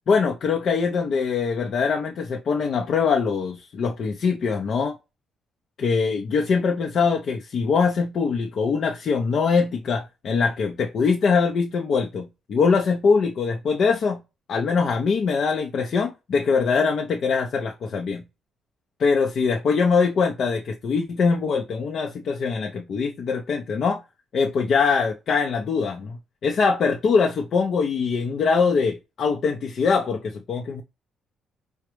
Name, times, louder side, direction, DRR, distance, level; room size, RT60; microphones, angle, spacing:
voice 1, 0.1-5.0 5.8-14.2 14.5-18.2 19.0-24.0 24.3-26.2 26.4-30.8, left 5 dB, 60° left, 0.6 m, -23 dB
4.9 x 2.1 x 3.1 m
cardioid pair, 90°, 0 cm